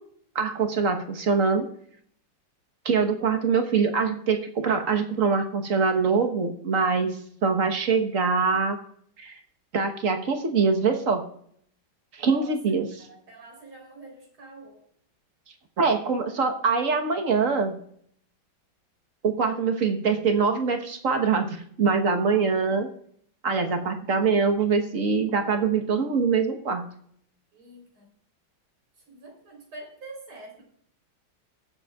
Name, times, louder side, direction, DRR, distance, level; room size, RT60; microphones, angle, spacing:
voice 1, 0.3-1.7 2.8-8.8 9.2-9.4 9.7-11.2 12.1-13.1 15.8-17.8 19.2-22.9 23.4-26.9, right 5 dB, 45° right, 6 dB, 1.3 m, -24 dB
voice 2, 12.2-12.6 13.1-14.8 27.5-28.1 29.1-30.6, right 2 dB, 90° right, 0 dB, 4.4 m, -45 dB
22.0 x 7.8 x 2.3 m, 0.65 s
omnidirectional pair, 2.2 m